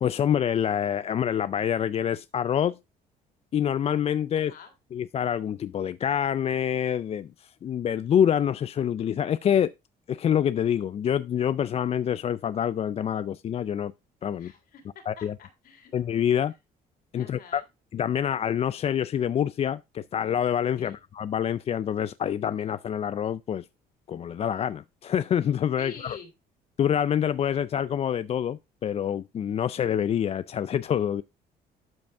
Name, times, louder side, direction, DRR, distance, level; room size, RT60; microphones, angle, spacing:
voice 1, 0.0-2.8 3.5-4.5 4.9-9.7 10.1-13.9 14.2-14.5 15.1-15.3 15.9-16.5 17.1-17.6 17.9-23.7 24.1-26.2 26.8-31.2, left 9 dB, 35° left, 0.4 m, -26 dB
voice 2, 4.3-4.7 14.3-15.9 17.1-17.7 20.8-21.0 25.8-26.3, left 6 dB, 60° left, 3.2 m, -47 dB
12.0 x 5.2 x 3.4 m
cardioid pair, 110°, 17 cm